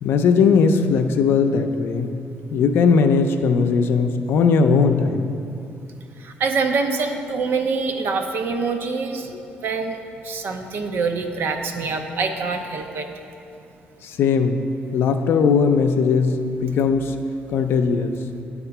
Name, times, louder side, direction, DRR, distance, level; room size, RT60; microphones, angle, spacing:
voice 1, 0.0-2.1 2.5-5.3 9.3-9.4 14.0-14.6 14.9-17.2 17.5-18.2, left 5 dB, 75° left, 6 dB, 0.5 m, -19 dB
voice 2, 6.2-9.3 9.6-10.0 10.2-13.1, right 4 dB, 65° right, 5 dB, 0.7 m, -25 dB
9.0 x 3.6 x 5.9 m, 2.7 s
cardioid pair, 105°, 4 cm